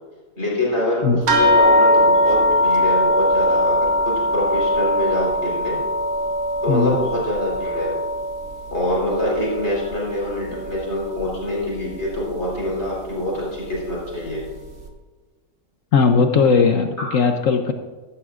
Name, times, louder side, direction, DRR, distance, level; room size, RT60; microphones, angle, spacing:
voice 1, 0.4-5.8 6.6-8.0 8.7-14.4 17.0-17.1, left 1 dB, 40° left, -4 dB, 4.2 m, -25 dB
sound 1, 1.3-10.1 10.4-11.3 12.0-12.1 12.6-12.7, left 1 dB, 60° right, 1.7 m, -20 dB
voice 2, 6.7-7.0 15.9-17.7, left 5 dB, 60° left, 6 dB, 1.0 m, -17 dB
15.5 x 11.5 x 2.4 m, 1.4 s
omnidirectional pair, 1.8 m